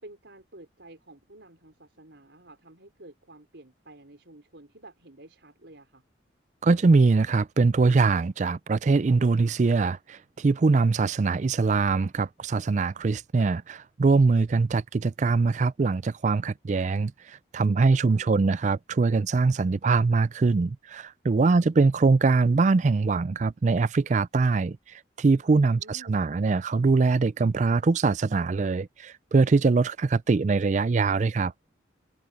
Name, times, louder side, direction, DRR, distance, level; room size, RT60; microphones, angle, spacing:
voice 1, 0.0-6.0 17.9-18.6 21.5-21.7 25.8-26.3, right 2 dB, 75° right, 4.8 m, -50 dB
voice 2, 6.6-31.5, right 4 dB, 40° right, 0.4 m, -23 dB
head